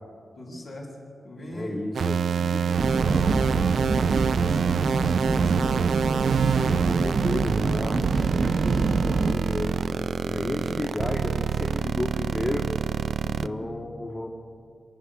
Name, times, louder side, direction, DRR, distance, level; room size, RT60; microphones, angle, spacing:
voice 1, 0.4-1.0 1.2-1.8 2.3-5.9 13.3-13.6, left 1 dB, 70° left, -2 dB, 6.9 m, -40 dB
voice 2, 1.5-2.2 6.4-14.3, left 1 dB, 40° left, -6 dB, 3.1 m, -33 dB
sound 1, 1.9-13.5, right 7 dB, 80° right, 0.5 m, -26 dB
sound 2, 2.8-9.3, right 4 dB, 65° right, 1.0 m, -25 dB
27.0 x 10.5 x 9.7 m, 2.3 s
cardioid pair, 65°, 0 cm